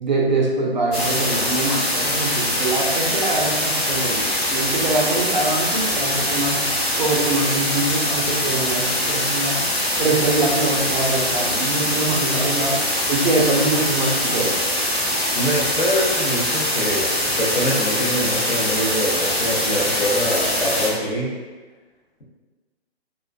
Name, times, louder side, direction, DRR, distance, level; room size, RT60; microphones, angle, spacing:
voice 1, 0.0-6.7 7.0-9.6 10.0-12.8 13.1-14.6, right 2 dB, 45° right, -2 dB, 0.4 m, -23 dB
sound 1, 0.9-20.9, left 1 dB, 25° left, 1.0 m, -23 dB
voice 2, 15.3-21.3, equal, 50° left, -5 dB, 0.8 m, -24 dB
2.3 x 2.2 x 2.4 m, 1.3 s
figure-of-eight pair, 135°, 32 cm